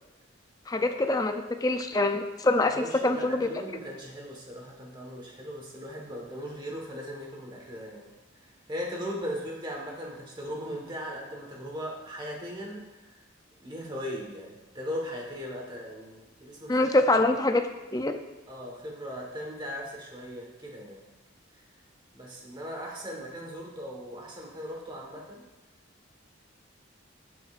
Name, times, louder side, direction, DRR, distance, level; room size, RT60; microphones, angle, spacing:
voice 1, 0.7-3.5 16.7-18.2, left 2 dB, 20° left, 6 dB, 0.4 m, -25 dB
voice 2, 2.7-8.1 8.7-13.2 13.6-16.9 17.3-17.4 18.5-21.0 22.1-25.4, equal, 20° right, -1 dB, 1.4 m, -38 dB
16.0 x 5.4 x 2.5 m, 1.1 s
head